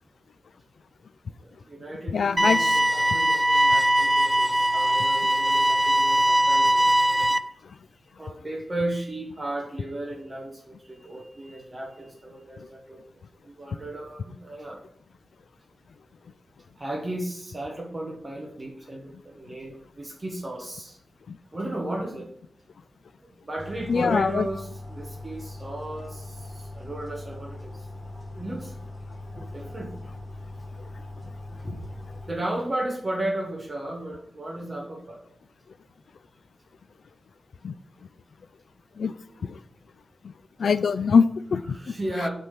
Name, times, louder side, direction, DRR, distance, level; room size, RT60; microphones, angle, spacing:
voice 1, 1.4-6.9 8.2-13.0 13.4-14.8 16.8-21.0 21.5-22.3 23.2-28.7 29.5-30.0 32.2-35.2 41.7-42.3, right 1 dB, 25° right, 0 dB, 1.2 m, -35 dB
voice 2, 2.1-2.8 7.1-7.3 7.6-7.8 12.6-12.7 21.3-21.4 23.9-24.5 37.6-37.7 39.0-39.1 39.4-39.6 40.2-40.3 40.6-41.9, left 5 dB, 70° left, 13 dB, 0.3 m, -24 dB
sound 1, 2.4-7.4, right 1 dB, 5° right, 0.4 m, -21 dB
sound 2, 23.6-32.3, left 1 dB, 15° left, 1.6 m, -40 dB
8.2 x 3.5 x 5.7 m, 0.64 s
wide cardioid pair, 170°, 0 cm